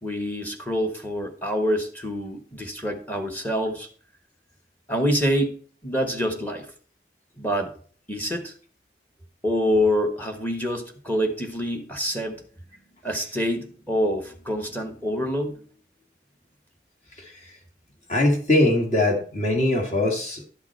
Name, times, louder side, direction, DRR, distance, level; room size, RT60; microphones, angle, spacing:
voice 1, 0.0-3.9 4.9-5.5 5.8-6.7 7.4-7.7 8.1-8.5 9.4-12.4 13.0-15.6, equal, 10° left, 5 dB, 1.2 m, -26 dB
voice 2, 18.1-20.4, left 1 dB, 40° left, 1 dB, 1.9 m, -21 dB
11.5 x 5.8 x 4.4 m, 0.43 s
head